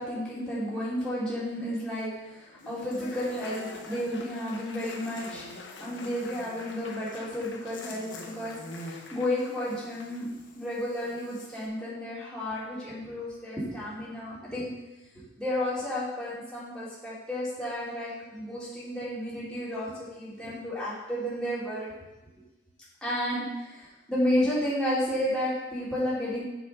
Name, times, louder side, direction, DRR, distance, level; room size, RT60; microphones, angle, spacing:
voice 1, 0.0-5.5 5.8-10.3 10.5-14.7 15.1-21.9 23.0-26.4, left 1 dB, 5° left, -11 dB, 2.8 m, -32 dB
Laughter / Applause, 2.3-10.2, left 3 dB, 70° left, 1.0 m, -47 dB
Buzz, 2.6-11.7, left 2 dB, 45° left, 1.1 m, -48 dB
7.1 x 5.8 x 5.4 m, 1.0 s
head